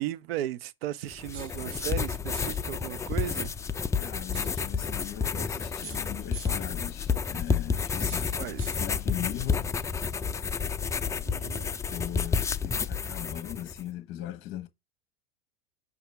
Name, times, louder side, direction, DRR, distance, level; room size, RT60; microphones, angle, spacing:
voice 1, 0.0-3.5 8.4-8.7 11.3-11.7, right 13 dB, 70° right, 0.7 m, -35 dB
sound 1, 1.1-13.8, left 5 dB, 10° left, 0.3 m, -30 dB
sound 2, 1.3-1.7 2.3-2.7 4.3-4.7 5.8-6.7 8.1-8.9, right 8 dB, 45° right, 1.3 m, -46 dB
voice 2, 3.9-9.7 11.9-14.7, left 12 dB, 40° left, 1.0 m, -39 dB
7.9 x 2.7 x 4.6 m
hypercardioid pair, 105°, 31 cm